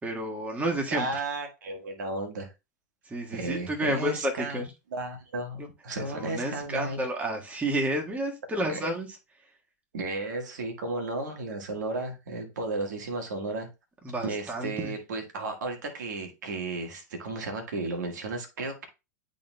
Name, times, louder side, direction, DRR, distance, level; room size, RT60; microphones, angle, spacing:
voice 1, 0.0-1.2 3.1-4.6 5.6-5.7 6.0-9.1 14.0-14.9, right 1 dB, 15° right, 1.6 m, -30 dB
voice 2, 0.9-2.5 3.3-4.6 4.9-7.0 8.6-8.9 9.9-13.7 14.2-18.9, right 2 dB, 75° right, 1.6 m, -34 dB
11.0 x 3.9 x 2.2 m
hypercardioid pair, 105°, 10 cm